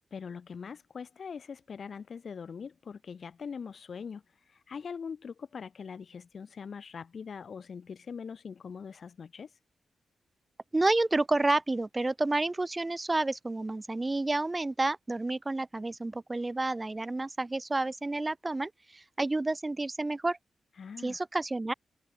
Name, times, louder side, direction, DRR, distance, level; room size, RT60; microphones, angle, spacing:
voice 1, 0.1-9.5 20.8-21.2, left 6 dB, 50° left, 1.3 m, -42 dB
voice 2, 10.7-20.4 21.0-21.7, right 2 dB, 20° right, 0.5 m, -30 dB
wide cardioid pair, 145°, 0 cm